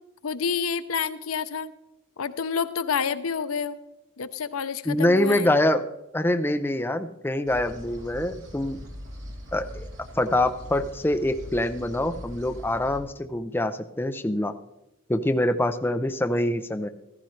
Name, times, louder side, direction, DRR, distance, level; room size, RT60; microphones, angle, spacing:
voice 1, 0.2-1.7 2.2-3.8 4.2-5.5, left 6 dB, 90° left, 13 dB, 0.6 m, -28 dB
voice 2, 4.9-5.8 6.1-8.8 9.5-9.9 10.2-14.5 15.1-16.9, left 1 dB, 10° left, 8 dB, 0.4 m, -25 dB
sound 1, 7.5-13.0, equal, 60° right, 3.2 m, -41 dB
14.5 x 14.0 x 3.2 m, 0.93 s
head